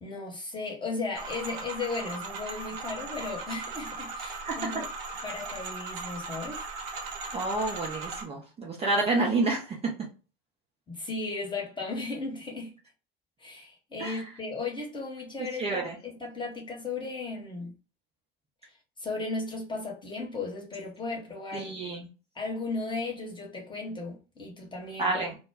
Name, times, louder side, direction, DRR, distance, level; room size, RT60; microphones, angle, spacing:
voice 1, 0.0-4.8 5.2-6.6 10.9-12.7 13.4-17.7 19.0-21.7 22.3-25.1, left 3 dB, 15° left, 1.1 m, -35 dB
sound 1, 1.1-8.2, right 3 dB, 50° right, 0.8 m, -38 dB
voice 2, 4.4-4.8 7.3-9.8 14.0-14.2 15.4-16.0 21.5-22.1 25.0-25.4, right 2 dB, 20° right, 0.6 m, -29 dB
2.1 x 2.1 x 3.3 m
figure-of-eight pair, 75°, 30 cm